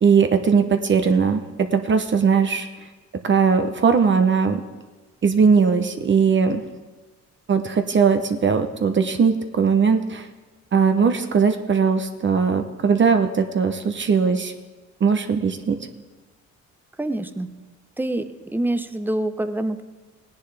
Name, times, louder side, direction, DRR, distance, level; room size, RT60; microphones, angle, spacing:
voice 1, 0.0-1.4 1.7-2.7 3.2-4.6 5.2-6.6 7.5-10.3 10.7-14.5 15.0-15.8, right 5 dB, 40° right, 7 dB, 0.8 m, -19 dB
voice 2, 17.0-17.5 18.0-19.8, right 1 dB, 5° right, 9 dB, 0.7 m, -26 dB
17.0 x 10.0 x 3.4 m, 1.3 s
cardioid pair, 90°, 30 cm